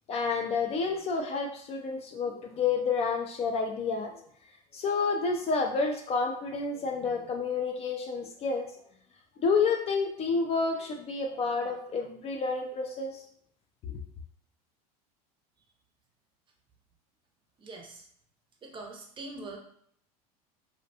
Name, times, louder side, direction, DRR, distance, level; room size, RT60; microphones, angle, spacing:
voice 1, 0.1-4.2 4.7-8.7 9.4-13.2 13.8-14.0, left 4 dB, 35° left, 3 dB, 0.3 m, -29 dB
voice 2, 17.6-18.0 18.6-19.6, right 2 dB, 25° right, 1 dB, 0.6 m, -42 dB
2.6 x 2.1 x 2.7 m, 0.65 s
supercardioid pair, 110°, 19 cm